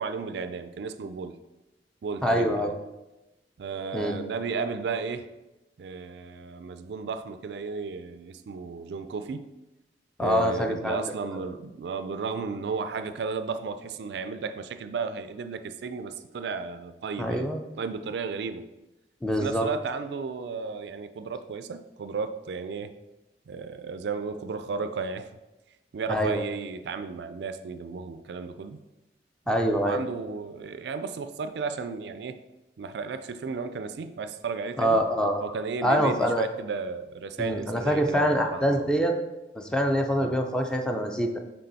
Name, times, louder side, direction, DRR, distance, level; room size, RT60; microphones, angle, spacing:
voice 1, 0.0-1.4 2.0-2.7 3.6-5.3 5.8-9.5 10.2-17.5 17.8-18.7 19.4-22.9 23.5-25.3 25.9-28.8 29.5-32.4 32.8-35.0 35.4-38.9 40.2-40.4, right 5 dB, 70° right, 10 dB, 0.3 m, -34 dB
voice 2, 2.2-2.7 3.9-4.2 10.2-11.0 17.2-17.6 19.2-19.7 26.1-26.4 29.5-30.0 34.8-35.4 35.8-36.5 37.4-39.1 39.6-41.4, equal, 5° left, 3 dB, 0.5 m, -25 dB
6.7 x 3.7 x 4.0 m, 1.0 s
head